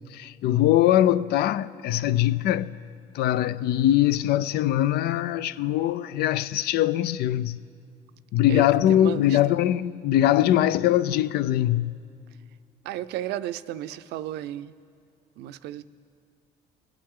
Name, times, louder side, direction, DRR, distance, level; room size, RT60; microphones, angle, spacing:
voice 1, 0.1-2.7 3.1-7.6 8.3-11.9, left 12 dB, 70° left, 0.4 m, -22 dB
voice 2, 8.5-9.6 12.8-14.7 15.4-15.8, right 13 dB, 80° right, 0.5 m, -34 dB
22.5 x 8.6 x 3.7 m
cardioid pair, 110°, 17 cm